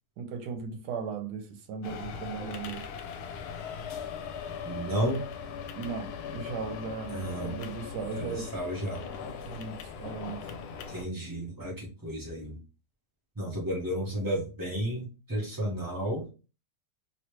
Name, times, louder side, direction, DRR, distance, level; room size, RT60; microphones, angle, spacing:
voice 1, 0.2-2.9 5.8-8.5 9.2-10.5, right 5 dB, 80° right, 1.3 m, -37 dB
sound 1, 1.8-11.0, left 6 dB, 75° left, 1.1 m, -39 dB
voice 2, 4.6-5.2 7.1-7.5 8.1-9.0 10.9-12.6 13.4-16.3, right 1 dB, 30° right, 0.4 m, -32 dB
3.2 x 2.7 x 2.9 m
omnidirectional pair, 1.8 m